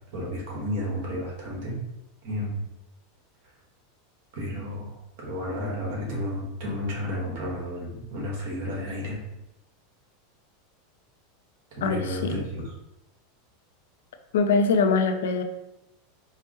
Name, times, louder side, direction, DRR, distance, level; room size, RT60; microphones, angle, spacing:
voice 1, 0.1-1.8 2.2-2.6 4.3-9.2 11.8-12.6, left 1 dB, 65° right, -2 dB, 1.4 m, -32 dB
voice 2, 11.8-12.4 14.3-15.4, left 4 dB, 85° left, 6 dB, 0.4 m, -23 dB
4.6 x 2.1 x 3.0 m, 0.90 s
supercardioid pair, 130°, 0 cm